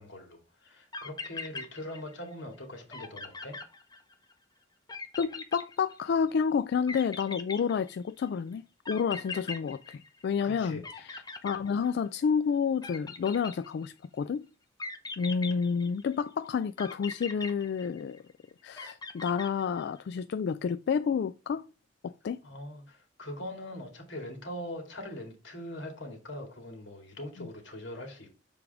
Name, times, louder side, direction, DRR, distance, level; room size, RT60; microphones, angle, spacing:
voice 1, 0.0-3.6 10.4-10.8 22.4-28.4, left 1 dB, 85° left, 2.2 m, -42 dB
sound 1, 0.7-0.8 0.9-2.3 2.6-2.7 2.9-4.3 4.9-6.3 6.9-8.2 8.8-10.5 10.8-12.2 12.8-14.0 14.8-16.2 16.8-18.3 18.8-20.0, left 4 dB, 20° left, 0.8 m, -41 dB
voice 2, 5.2-14.5 15.2-18.2 18.6-21.7 22.0-22.4 27.4-27.5, left 6 dB, 65° left, 0.3 m, -30 dB
6.9 x 5.0 x 3.4 m
head